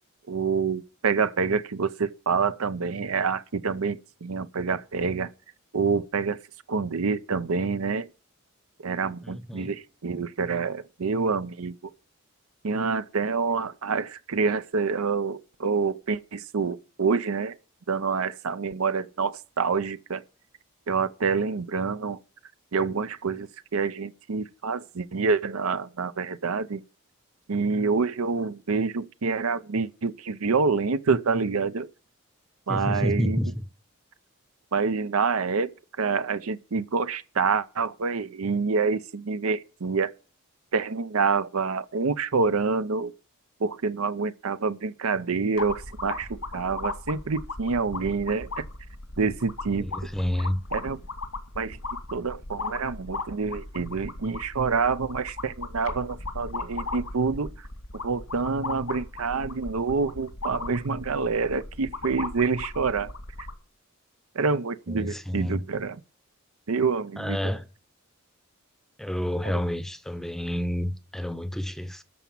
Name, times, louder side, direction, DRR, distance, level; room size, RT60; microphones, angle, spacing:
voice 1, 0.3-5.3 5.7-6.4 6.7-8.1 8.8-11.9 12.6-17.6 17.9-20.2 20.9-22.2 22.7-26.8 27.5-31.9 32.7-33.4 34.7-40.1 40.7-43.1 43.6-48.6 49.2-49.9 50.7-51.0 51.6-51.8 52.1-57.7 58.0-63.1 64.3-66.0 66.7-67.5 69.4-69.6, right 4 dB, 80° right, 0.7 m, -27 dB
voice 2, 9.2-9.7 32.7-33.5 49.8-50.6 64.9-65.6 67.2-67.7 69.0-72.0, equal, ahead, 0.7 m, -29 dB
sound 1, 45.6-63.6, left 3 dB, 90° left, 2.5 m, -37 dB
13.0 x 5.9 x 7.1 m
head